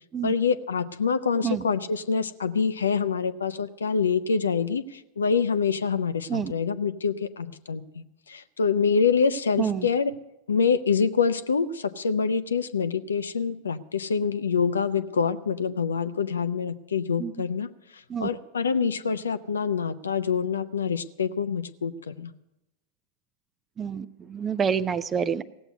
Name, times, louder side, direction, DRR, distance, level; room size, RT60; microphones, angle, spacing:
voice 1, 0.2-10.1 10.5-17.7 17.9-22.3, left 5 dB, 70° left, 12 dB, 0.7 m, -26 dB
voice 2, 23.8-25.4, right 7 dB, 20° right, 15 dB, 0.6 m, -28 dB
17.0 x 8.0 x 9.6 m, 0.92 s
figure-of-eight pair, 90°, 0 cm